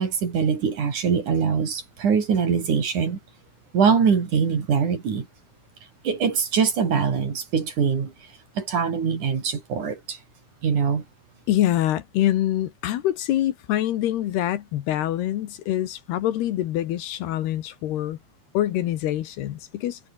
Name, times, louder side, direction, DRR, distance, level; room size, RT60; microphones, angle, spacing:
voice 1, 0.0-3.2 3.7-5.3 6.0-8.1 8.6-10.2 10.6-11.0, right 6 dB, 50° right, 4.5 m, -23 dB
voice 2, 11.5-18.2 18.5-20.0, left 13 dB, 75° left, 3.3 m, -25 dB
omnidirectional pair, 5.0 m